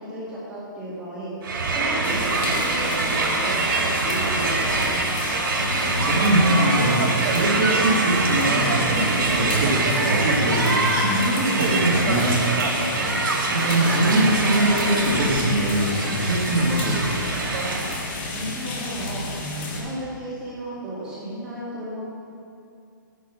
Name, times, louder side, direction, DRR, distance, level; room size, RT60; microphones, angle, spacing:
voice 1, 0.0-1.3 1.7-5.0 13.0-13.2 18.3-19.2 19.6-22.0, right 1 dB, 10° right, -9 dB, 2.1 m, -34 dB
Crowd, 1.4-18.1, right 3 dB, 85° right, 2.5 m, -24 dB
sound 1, 2.0-19.8, left 2 dB, 30° left, 1.7 m, -32 dB
voice 2, 5.6-12.3 13.5-17.0, right 1 dB, 30° right, -4 dB, 2.1 m, -22 dB
10.5 x 10.0 x 4.5 m, 2.5 s
hypercardioid pair, 175°, 11 cm